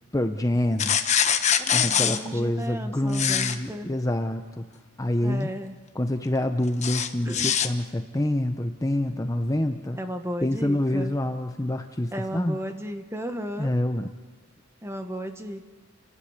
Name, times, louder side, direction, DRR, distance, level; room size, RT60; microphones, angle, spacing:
voice 1, 0.1-1.0 1.7-4.7 5.0-5.5 5.9-10.0 10.4-12.6 13.6-14.1, left 1 dB, 15° left, 7 dB, 0.8 m, -26 dB
sound 1, 0.8-2.2 3.1-3.6 6.8-7.7, left 8 dB, 35° left, 1.1 m, -23 dB
voice 2, 1.6-3.9 5.2-5.8 7.2-7.5 9.9-11.1 12.1-13.7 14.8-15.6, equal, 15° right, 6 dB, 1.6 m, -34 dB
29.5 x 16.5 x 8.3 m, 1.4 s
head